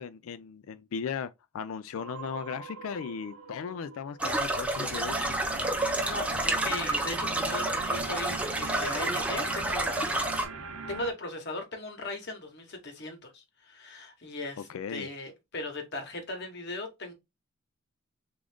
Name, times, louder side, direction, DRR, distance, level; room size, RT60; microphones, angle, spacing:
voice 1, 0.0-5.3 14.6-15.1, left 6 dB, 75° left, 0.3 m, -37 dB
sound 1, 1.9-4.5 4.8-11.1, right 4 dB, 85° right, 0.6 m, -42 dB
sound 2, 4.2-10.4, right 2 dB, 5° right, 0.5 m, -29 dB
voice 2, 6.0-10.0 10.9-17.1, left 2 dB, 50° left, 1.0 m, -38 dB
3.6 x 2.5 x 3.4 m
head